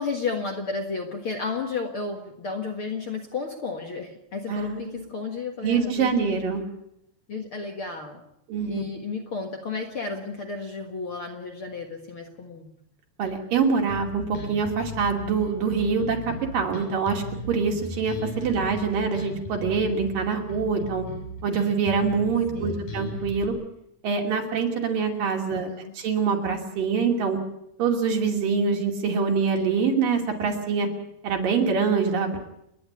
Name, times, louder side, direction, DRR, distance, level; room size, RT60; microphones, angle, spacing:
voice 1, 0.0-6.3 7.3-8.2 8.6-12.7 18.5-18.6 22.5-23.0 25.7-25.9, left 4 dB, 50° left, 3 dB, 1.9 m, -33 dB
voice 2, 4.5-5.1 5.6-6.6 8.5-8.8 13.2-21.1 21.4-23.5 24.0-25.7 26.0-27.4 27.8-30.9 31.2-32.4, right 5 dB, 65° right, 2 dB, 4.3 m, -25 dB
Bass guitar, 13.9-23.5, left 2 dB, 70° left, 8.2 m, -37 dB
30.0 x 10.5 x 9.6 m, 0.78 s
omnidirectional pair, 4.2 m